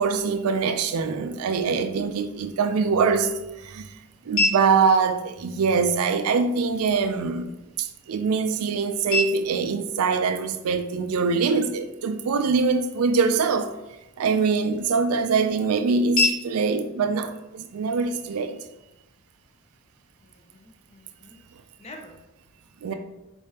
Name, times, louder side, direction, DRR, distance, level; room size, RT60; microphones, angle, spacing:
voice 1, 0.0-3.8 4.3-7.5 7.8-13.7 14.2-18.6 22.8-22.9, right 5 dB, 80° right, 0.4 m, -23 dB
sound 1, 2.6-18.6, left 2 dB, 60° left, 1.1 m, -34 dB
voice 2, 20.2-22.2 22.8-22.9, left 1 dB, 30° left, 0.6 m, -47 dB
4.5 x 3.4 x 2.8 m
head